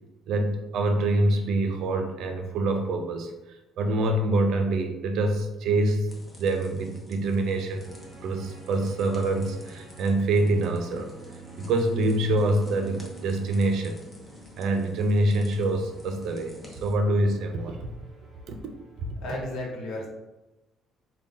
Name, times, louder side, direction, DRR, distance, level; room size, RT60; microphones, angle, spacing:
voice 1, 0.3-6.1 6.4-7.8 8.2-11.1 11.6-14.0 14.6-17.9 18.5-18.6, right 2 dB, 60° right, 5 dB, 0.5 m, -25 dB
sound 1, 6.1-16.9, left 1 dB, 15° left, 0.8 m, -49 dB
sound 2, 7.8-19.4, right 3 dB, 35° right, 0.8 m, -49 dB
voice 2, 19.2-20.1, left 1 dB, 65° left, -1 dB, 1.1 m, -33 dB
3.7 x 2.2 x 3.7 m, 1.0 s
cardioid pair, 150°, 0 cm